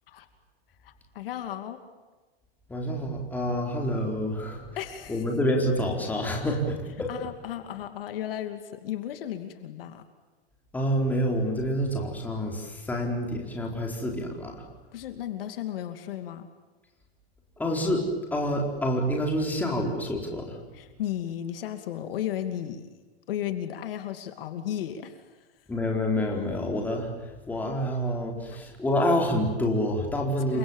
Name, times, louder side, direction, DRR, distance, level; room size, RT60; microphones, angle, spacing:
voice 1, 0.8-1.8 4.8-5.2 7.1-10.0 14.9-16.5 20.7-23.0 23.3-25.3 28.5-28.6 30.5-30.6, left 11 dB, 60° left, 8 dB, 2.7 m, -34 dB
voice 2, 2.7-4.7 5.1-7.1 10.7-14.5 17.6-20.6 25.7-27.1 27.5-30.6, equal, 5° left, 0 dB, 4.4 m, -27 dB
29.5 x 25.0 x 7.3 m, 1.2 s
supercardioid pair, 175°, 31 cm